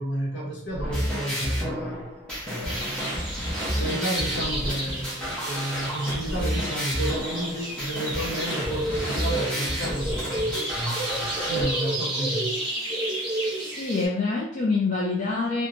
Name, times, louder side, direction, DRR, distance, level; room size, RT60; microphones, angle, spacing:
voice 1, 0.0-2.1 2.4-3.5 3.7-12.6, right 1 dB, 65° left, -4 dB, 0.9 m, -32 dB
sound 1, 0.7-11.6, equal, 5° left, 0.8 m, -30 dB
sound 2, 2.7-14.1, right 1 dB, 20° right, 1.0 m, -31 dB
voice 2, 13.6-15.7, left 3 dB, 40° left, -4 dB, 0.4 m, -26 dB
2.9 x 2.1 x 2.6 m, 0.64 s
head